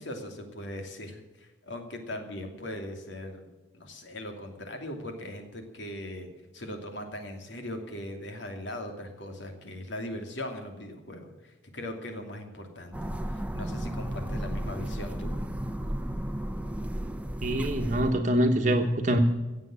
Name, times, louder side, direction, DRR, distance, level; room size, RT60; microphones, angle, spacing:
voice 1, 0.0-3.5 3.7-6.3 6.5-15.3, left 1 dB, 75° left, 4 dB, 2.7 m, -39 dB
sound 1, 12.9-18.1, right 1 dB, 5° right, 0.8 m, -33 dB
voice 2, 17.4-19.2, right 1 dB, 40° right, 4 dB, 1.2 m, -25 dB
16.5 x 7.5 x 8.8 m, 1.1 s
head